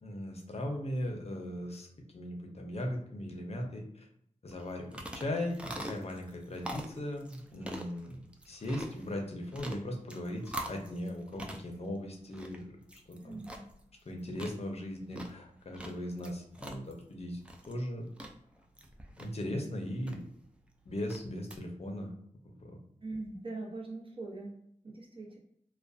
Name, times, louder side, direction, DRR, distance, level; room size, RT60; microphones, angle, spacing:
voice 1, 0.0-1.9 2.1-4.1 4.4-12.8 13.1-13.4 14.1-17.4 17.7-18.1 19.2-20.2 20.9-22.1 22.6-22.8, left 1 dB, 50° left, 2 dB, 0.6 m, -38 dB
sound 1, 4.5-21.6, right 1 dB, 10° right, 0.3 m, -46 dB
voice 2, 13.2-13.6 23.0-24.5 24.8-25.4, right 2 dB, 40° right, -3 dB, 0.8 m, -41 dB
2.3 x 2.1 x 2.5 m, 0.72 s
wide cardioid pair, 60°, 13 cm